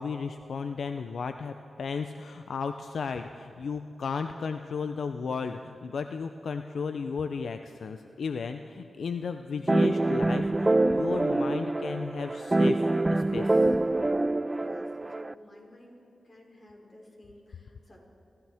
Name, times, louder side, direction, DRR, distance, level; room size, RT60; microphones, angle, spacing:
voice 1, 0.0-12.8 13.1-13.6, left 5 dB, 75° left, 8 dB, 0.5 m, -34 dB
sound 1, 9.7-15.3, right 2 dB, 20° right, 0.3 m, -25 dB
voice 2, 14.6-16.0 16.2-18.0, left 1 dB, 40° left, -2 dB, 4.4 m, -53 dB
29.0 x 14.0 x 3.5 m, 2.7 s
cardioid pair, 70°, 0 cm